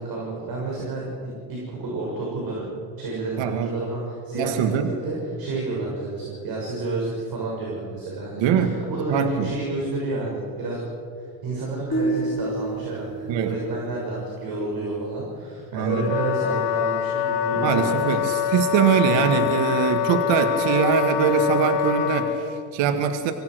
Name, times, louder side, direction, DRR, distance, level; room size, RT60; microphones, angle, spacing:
voice 1, 0.0-2.6 3.0-10.8 11.4-18.1, right 2 dB, 45° right, -3 dB, 6.8 m, -30 dB
voice 2, 3.4-3.7 4.3-4.9 8.4-8.8 9.1-9.5 13.3-13.6 15.7-16.1 17.6-23.3, right 7 dB, 60° right, 7 dB, 2.0 m, -22 dB
sound 1, 11.9-15.1, right 2 dB, 35° left, 4.9 m, -30 dB
Wind instrument woodwind instrument, 15.9-22.4, left 9 dB, 70° left, 3.0 m, -25 dB
25.5 x 17.5 x 6.4 m, 2.4 s
supercardioid pair, 90°, 49 cm